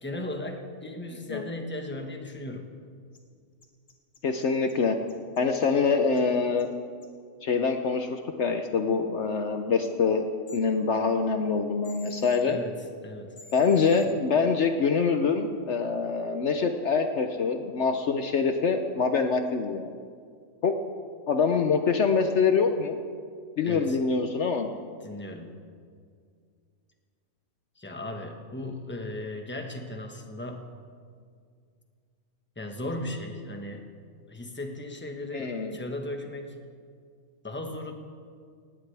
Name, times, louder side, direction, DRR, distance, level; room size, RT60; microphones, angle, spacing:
voice 1, 0.0-2.7 12.5-12.7 13.0-13.4 23.6-24.0 25.0-25.6 27.8-30.6 32.6-33.8 34.3-36.5 37.4-37.9, left 1 dB, 10° left, 3 dB, 1.2 m, -36 dB
sound 1, 3.1-3.2 3.6-4.7 5.1-5.7 6.2-6.3 6.6-6.7 7.0-7.1 10.5-10.6 11.8-12.4 13.4-14.1, left 3 dB, 85° left, 2.0 m, -49 dB
voice 2, 4.2-4.9 5.4-6.7 7.4-10.2 10.5-12.6 13.5-19.9 20.6-20.8 21.3-23.0 23.6-24.7 35.3-35.8, left 5 dB, 60° left, 6 dB, 1.0 m, -25 dB
18.5 x 17.5 x 3.4 m, 2.1 s
omnidirectional pair, 1.4 m